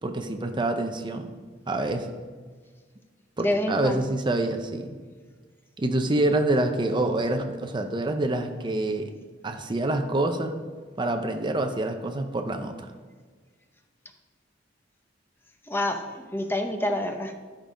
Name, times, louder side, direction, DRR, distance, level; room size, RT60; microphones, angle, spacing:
voice 1, 0.0-1.3 1.7-2.1 3.4-4.9 5.8-9.1 9.4-10.6 11.0-12.9, right 2 dB, 25° right, 6 dB, 0.6 m, -26 dB
voice 2, 3.4-4.0 15.7-17.3, left 1 dB, 10° left, 5 dB, 0.7 m, -27 dB
11.5 x 5.2 x 5.1 m, 1.5 s
head